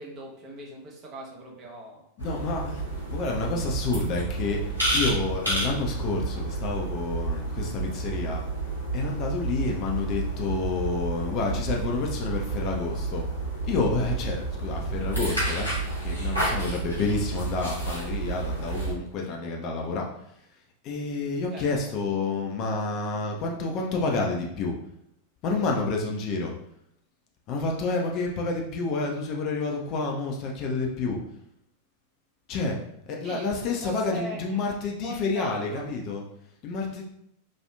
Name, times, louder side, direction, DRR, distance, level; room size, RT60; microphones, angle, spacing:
voice 1, 0.0-2.0 21.5-21.7 33.2-33.6 33.8-34.6 35.0-35.8, right 1 dB, 30° right, -1 dB, 0.7 m, -40 dB
sound 1, 2.2-18.9, right 2 dB, 90° left, 1.1 m, -30 dB
voice 2, 2.2-2.8 3.1-8.4 8.9-13.3 13.6-15.7 16.0-20.1 20.8-24.7 25.4-26.5 27.5-31.2 32.5-32.8 33.1-36.2 36.6-37.1, left 3 dB, 40° left, 0 dB, 0.4 m, -29 dB
2.8 x 2.3 x 2.2 m, 0.75 s
figure-of-eight pair, 90°, 0 cm